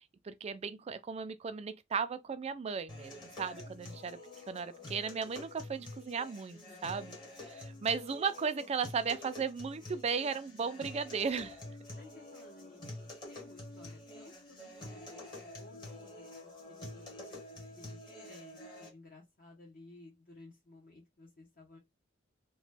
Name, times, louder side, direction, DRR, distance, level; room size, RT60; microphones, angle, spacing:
voice 1, 0.0-4.2 4.5-7.2 7.5-11.6, right 5 dB, 30° right, 0.3 m, -36 dB
sound 1, 2.9-18.9, left 2 dB, 25° left, 1.1 m, -48 dB
voice 2, 6.5-6.9 12.0-21.8, left 2 dB, 45° left, 1.0 m, -57 dB
2.9 x 2.2 x 3.2 m
head